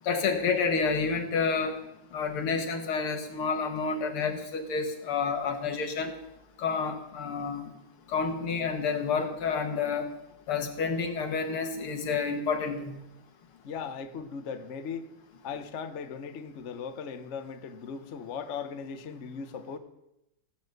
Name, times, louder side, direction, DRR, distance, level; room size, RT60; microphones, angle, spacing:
voice 1, 0.0-1.8 2.1-6.1 6.6-7.7 8.1-10.1 10.5-13.0, left 5 dB, 85° left, 2.5 m, -29 dB
voice 2, 13.6-15.1 15.4-19.8, left 6 dB, 45° left, 1.0 m, -38 dB
17.0 x 8.8 x 6.7 m
omnidirectional pair, 2.3 m